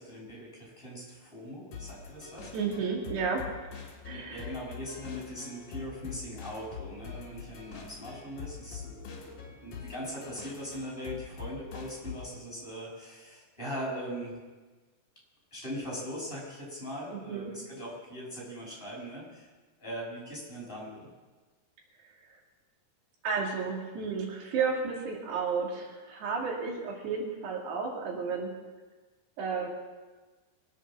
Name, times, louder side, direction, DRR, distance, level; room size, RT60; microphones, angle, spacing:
voice 1, 0.0-2.5 4.1-14.4 15.5-19.5 19.8-21.1, equal, 10° left, -5 dB, 5.8 m, -40 dB
sound 1, 1.7-12.4, left 7 dB, 55° left, 3.1 m, -44 dB
voice 2, 2.5-3.4 4.1-4.5 17.1-17.5 23.2-28.5 29.4-29.7, right 5 dB, 75° right, -2 dB, 4.4 m, -32 dB
24.5 x 8.1 x 7.3 m, 1.3 s
omnidirectional pair, 4.9 m